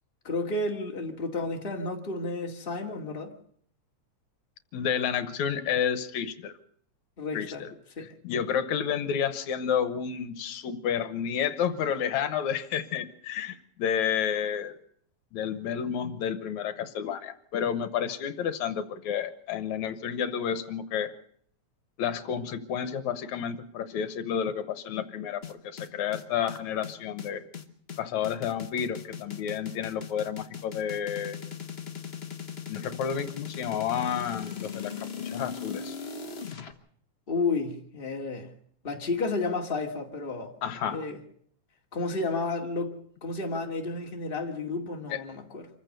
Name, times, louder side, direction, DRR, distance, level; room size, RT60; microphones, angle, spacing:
voice 1, 0.2-3.3 7.2-7.6 8.0-8.1 37.3-38.5 38.8-40.5 40.9-41.2 41.9-45.7, left 3 dB, 20° left, 2.2 m, -31 dB
voice 2, 4.7-6.6 7.3-7.7 8.0-14.8 15.3-21.1 22.0-27.4 28.0-31.4 32.7-36.0 40.6-41.0 45.1-45.2, left 8 dB, 75° left, 2.4 m, -30 dB
sound 1, 25.4-36.7, left 7 dB, 40° left, 0.9 m, -38 dB
26.0 x 15.0 x 6.7 m
omnidirectional pair, 3.3 m